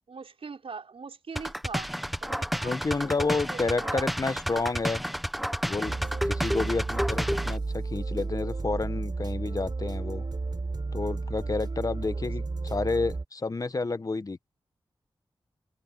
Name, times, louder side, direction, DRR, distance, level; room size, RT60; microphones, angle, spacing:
voice 1, 0.1-1.9 2.2-4.1 11.9-12.3, right 5 dB, 80° right, 5.5 m, -42 dB
sound 1, 1.4-7.6, equal, ahead, 0.9 m, -31 dB
voice 2, 2.6-5.0 5.6-6.0 6.3-10.3 10.9-14.5, left 3 dB, 40° left, 0.9 m, -30 dB
sound 2, 5.8-13.2, right 3 dB, 50° right, 4.0 m, -33 dB
wide cardioid pair, 90°, 10 cm